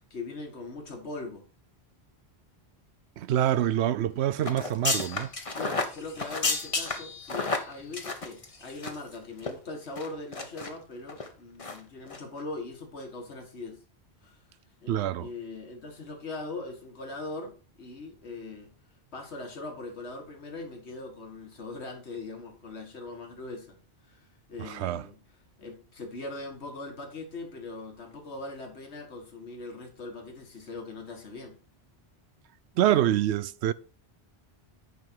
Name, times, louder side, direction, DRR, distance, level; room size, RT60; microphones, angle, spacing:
voice 1, 0.0-1.4 5.5-13.8 14.2-14.4 14.8-18.7 19.1-23.8 24.1-25.2 25.6-31.6, left 2 dB, 90° left, 2.0 m, -40 dB
voice 2, 3.2-5.3 14.9-15.3 24.6-25.0 32.8-33.7, right 12 dB, 80° right, 0.8 m, -26 dB
sound 1, 4.4-9.1 9.4-9.5 10.0-10.7 11.1-11.3 11.6-11.8 12.1-12.2, left 3 dB, 35° left, 1.1 m, -31 dB
9.4 x 5.4 x 4.5 m
omnidirectional pair, 1.1 m